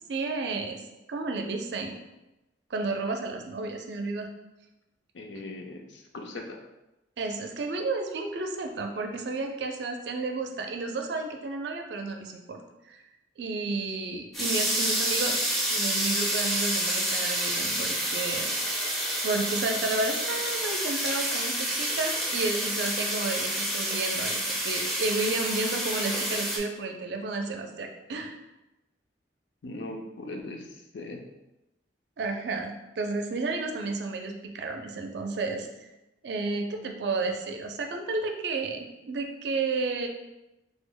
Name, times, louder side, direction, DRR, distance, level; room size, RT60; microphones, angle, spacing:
voice 1, 0.1-0.8 1.1-2.0 2.7-4.3 7.2-13.0 13.4-15.4 15.7-18.5 19.2-28.4 32.2-35.9 36.2-40.1, right 3 dB, 70° right, 4 dB, 0.4 m, -32 dB
voice 2, 5.1-6.6 29.6-31.2, left 2 dB, 80° left, 2 dB, 0.5 m, -39 dB
sound 1, 14.3-26.6, right 1 dB, ahead, 0.4 m, -29 dB
3.2 x 2.0 x 3.7 m, 0.98 s
head